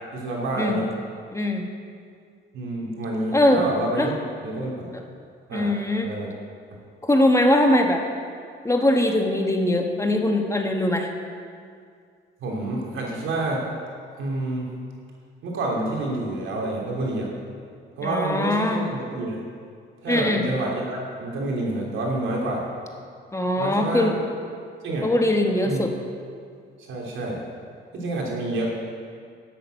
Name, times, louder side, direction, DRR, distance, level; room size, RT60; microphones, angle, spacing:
voice 1, 0.1-0.9 2.5-4.1 4.4-4.9 5.5-6.3 12.4-13.7 14.2-14.7 15.4-17.3 18.0-19.4 20.0-22.6 23.6-24.1 24.8-25.1 25.6-25.8 26.8-27.4 27.9-28.7, right 2 dB, 80° right, -2 dB, 3.2 m, -28 dB
voice 2, 1.3-1.7 3.3-3.6 3.9-4.1 5.5-6.1 7.0-8.0 8.6-11.1 18.0-18.8 20.1-20.5 23.3-24.2 25.0-25.9, left 1 dB, 15° left, 2 dB, 1.4 m, -21 dB
11.0 x 8.1 x 7.9 m, 2.2 s
cardioid pair, 90°, 20 cm